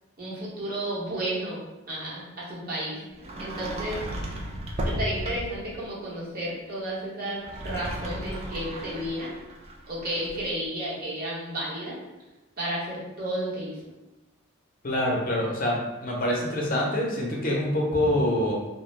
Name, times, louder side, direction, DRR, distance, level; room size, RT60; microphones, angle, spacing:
voice 1, 0.2-1.6 1.9-3.0 3.4-4.0 4.8-9.3 9.9-12.0 12.6-13.8, right 1 dB, 45° right, -6 dB, 0.9 m, -32 dB
Sliding door, 3.2-5.7 7.3-10.5, right 1 dB, 30° right, 0.3 m, -34 dB
voice 2, 14.8-18.6, left 1 dB, 40° left, -2 dB, 0.6 m, -25 dB
2.5 x 2.0 x 3.1 m, 1.0 s
head